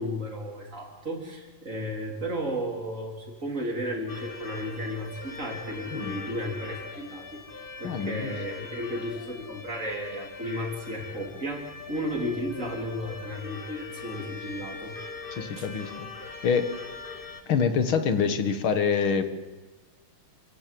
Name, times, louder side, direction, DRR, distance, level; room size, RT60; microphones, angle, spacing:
voice 1, 0.0-7.4 7.8-14.9 15.6-15.7, equal, 35° right, 1 dB, 4.2 m, -34 dB
sound 1, 4.1-17.4, left 4 dB, 30° left, 1.3 m, -41 dB
voice 2, 7.8-8.3 15.3-16.1 16.4-16.7 17.5-19.3, left 6 dB, 70° left, 9 dB, 2.4 m, -26 dB
28.5 x 16.5 x 7.8 m, 1.3 s
omnidirectional pair, 2.4 m